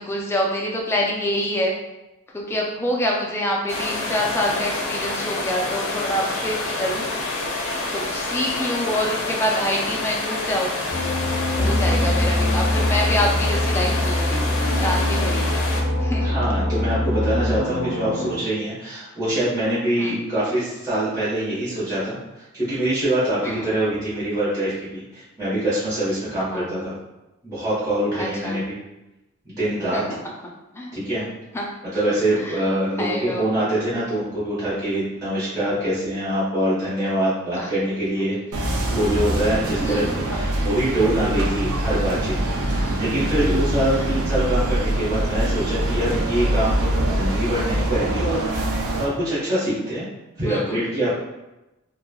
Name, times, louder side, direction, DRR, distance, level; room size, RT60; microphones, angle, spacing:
voice 1, 0.0-1.7 2.3-7.1 7.9-10.9 11.6-14.4 14.8-15.5 16.0-16.3 20.0-20.2 23.4-23.7 26.4-26.7 28.1-28.6 29.9-30.0 30.7-31.0 31.5-31.7 32.4-32.6 33.0-33.5 37.6-37.7 39.8-40.1 42.8-43.0 43.9-44.0 50.4-50.8, left 1 dB, 10° left, -1 dB, 0.3 m, -26 dB
sound 1, 3.7-15.8, left 2 dB, 70° left, 0.5 m, -28 dB
sound 2, 10.9-18.4, left 1 dB, 40° left, 1.2 m, -23 dB
voice 2, 16.2-27.0 27.4-28.8 29.4-30.2 30.9-31.3 31.9-38.4 38.9-50.1 50.4-51.2, right 1 dB, 15° right, -13 dB, 1.1 m, -24 dB
sound 3, 38.5-49.1, right 1 dB, 85° right, 0.5 m, -24 dB
3.1 x 2.2 x 2.2 m, 0.98 s
head